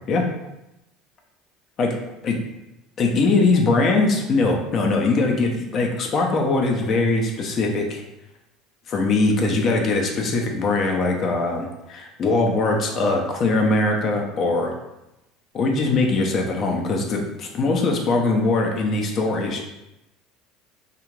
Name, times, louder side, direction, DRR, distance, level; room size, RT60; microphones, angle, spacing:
voice 1, 3.0-8.0 8.9-14.7 15.5-19.6, left 3 dB, 50° left, 2 dB, 0.6 m, -21 dB
2.4 x 2.4 x 3.1 m, 0.92 s
hypercardioid pair, 75°, 0 cm